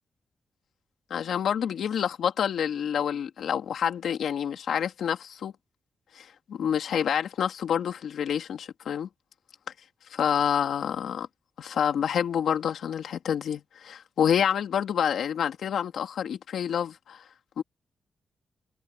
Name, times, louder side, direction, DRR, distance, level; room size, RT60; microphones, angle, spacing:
voice 1, 1.1-5.5 6.1-9.1 10.1-11.3 11.6-17.2 17.6-17.7, left 8 dB, 75° left, 3.1 m, -28 dB
wide cardioid pair, 145°, 0 cm